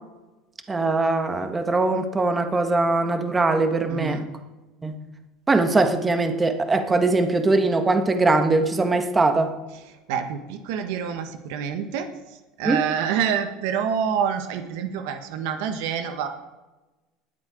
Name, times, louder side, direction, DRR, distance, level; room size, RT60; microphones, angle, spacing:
voice 1, 0.7-4.3 4.8-4.9 5.5-9.5 12.6-12.8, right 3 dB, 20° right, 7 dB, 1.6 m, -21 dB
voice 2, 3.9-4.3 10.1-16.3, right 7 dB, 75° right, 7 dB, 1.2 m, -27 dB
20.0 x 7.9 x 5.0 m, 1.1 s
supercardioid pair, 90°, 0 cm